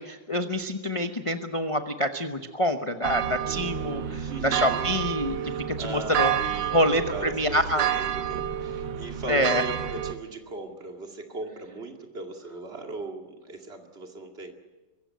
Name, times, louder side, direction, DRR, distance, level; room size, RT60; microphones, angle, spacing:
voice 1, 0.0-6.4 6.7-7.9 9.3-9.6, equal, 35° left, 6 dB, 0.5 m, -27 dB
sound 1, 3.0-10.1, right 10 dB, 75° right, 1.7 m, -29 dB
voice 2, 3.4-5.0 5.3-14.5, right 3 dB, 30° right, 3 dB, 2.4 m, -38 dB
23.5 x 15.0 x 9.2 m, 1.2 s
omnidirectional pair, 2.1 m